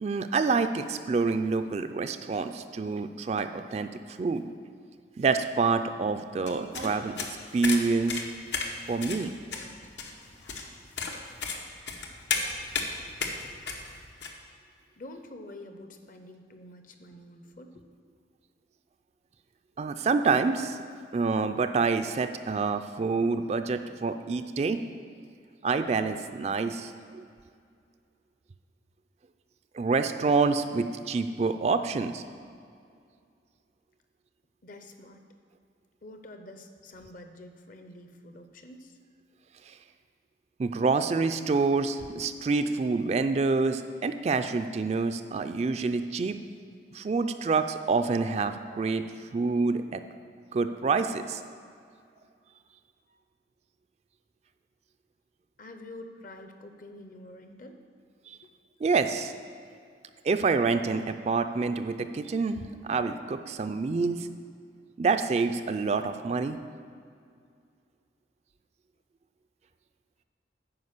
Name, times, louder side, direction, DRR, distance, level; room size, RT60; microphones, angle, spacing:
voice 1, 0.0-4.5 5.2-7.2 7.5-8.2 8.9-9.3 19.8-20.8 21.1-24.8 25.6-27.2 29.7-32.2 39.7-39.8 40.6-46.4 46.9-49.0 49.3-50.0 50.5-51.4 58.3-58.4 58.8-59.3 60.2-64.3 65.0-66.6, right 4 dB, 35° right, 9 dB, 0.3 m, -27 dB
sound 1, 6.5-14.3, left 5 dB, 80° left, 1.0 m, -34 dB
voice 2, 15.0-17.8 34.6-35.2 36.0-39.0 55.6-57.8 58.4-58.5, left 1 dB, 50° left, 6 dB, 0.7 m, -47 dB
9.5 x 5.1 x 6.6 m, 2.3 s
head